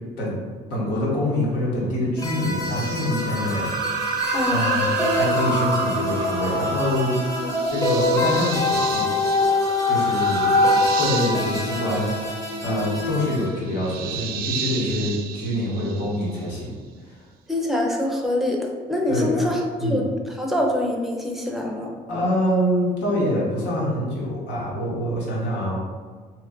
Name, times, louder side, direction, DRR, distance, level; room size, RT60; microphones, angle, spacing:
voice 1, 0.7-3.7 4.0-7.1 7.7-9.0 9.9-16.7 17.1-17.2 19.1-19.5 19.8-20.0 22.1-25.8, left 1 dB, 80° left, -5 dB, 1.3 m, -25 dB
sound 1, 2.2-13.5, left 2 dB, 20° left, 0.9 m, -24 dB
sound 2, 2.6-16.5, right 6 dB, 65° right, 0.4 m, -31 dB
voice 2, 4.3-4.8 7.4-7.5 17.5-18.6 18.9-21.9, left 1 dB, ahead, 0 dB, 0.6 m, -25 dB
3.0 x 2.4 x 3.6 m, 1.5 s
cardioid pair, 110°, 17 cm